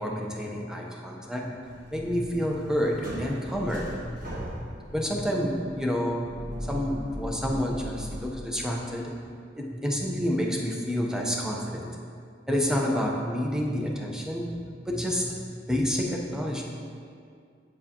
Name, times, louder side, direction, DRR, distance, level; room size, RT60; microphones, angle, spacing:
voice 1, 0.0-4.0 4.9-6.3 6.7-9.3 9.6-11.9 12.5-14.6 14.9-15.3 15.7-16.6, equal, 5° right, -1 dB, 0.8 m, -29 dB
sound 1, 1.6-8.3, equal, 50° right, 1.3 m, -39 dB
8.2 x 7.5 x 2.9 m, 2.3 s
head